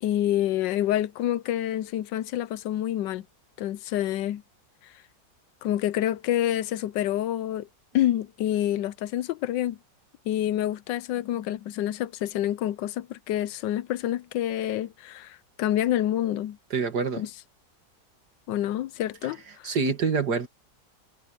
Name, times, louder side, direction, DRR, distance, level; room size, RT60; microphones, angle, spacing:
voice 1, 0.0-3.2 3.6-4.4 4.8-4.9 5.6-7.7 7.9-9.8 10.3-16.6 17.2-17.3 18.5-19.7, left 12 dB, 80° left, 1.3 m, -27 dB
voice 2, 16.7-17.2 19.6-20.5, right 5 dB, 65° right, 2.6 m, -26 dB
omnidirectional pair, 1.9 m